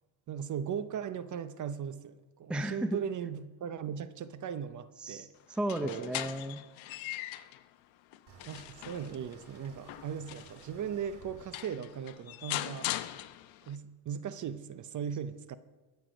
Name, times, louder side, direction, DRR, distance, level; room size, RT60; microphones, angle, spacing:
voice 1, 0.3-5.3 5.8-6.1 8.5-12.9 13.7-15.6, right 8 dB, 40° right, 13 dB, 0.7 m, -38 dB
voice 2, 2.5-3.0 5.0-6.6, right 1 dB, ahead, 9 dB, 0.6 m, -34 dB
sound 1, 5.5-7.6 8.1-10.7 11.2-11.3 11.5-13.8, left 16 dB, 75° left, 0.9 m, -40 dB
sound 2, 8.3-13.2, right 5 dB, 55° right, 2.7 m, -57 dB
21.5 x 8.3 x 5.2 m, 1.2 s
cardioid pair, 130°, 48 cm